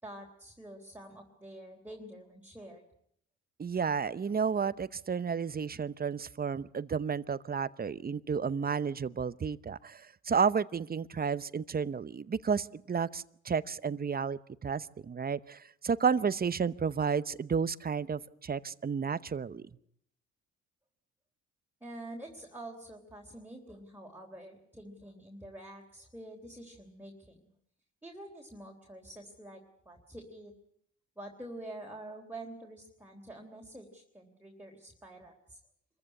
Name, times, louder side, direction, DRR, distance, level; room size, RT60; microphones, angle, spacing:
voice 1, 0.0-2.8 21.8-27.5 28.0-30.5 31.2-35.6, right 1 dB, 5° right, 0 dB, 3.5 m, -47 dB
voice 2, 3.6-19.6, right 6 dB, 30° right, 16 dB, 0.9 m, -32 dB
25.5 x 15.0 x 9.8 m, 0.70 s
cardioid pair, 90°, 30 cm